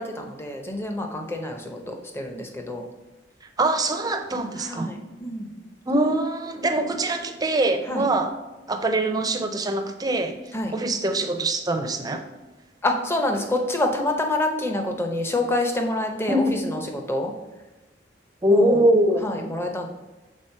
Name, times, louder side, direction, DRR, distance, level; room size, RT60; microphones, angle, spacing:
voice 1, 0.0-2.8 4.6-5.5 7.9-8.1 10.5-10.7 12.8-17.3 18.5-18.8 19.2-19.9, left 1 dB, 15° left, 3 dB, 0.8 m, -27 dB
voice 2, 3.6-4.9 5.9-8.3 8.7-10.4 10.7-12.2 16.3-16.6 18.4-19.2, right 1 dB, 20° right, 6 dB, 0.5 m, -23 dB
6.3 x 3.9 x 5.4 m, 1.1 s
head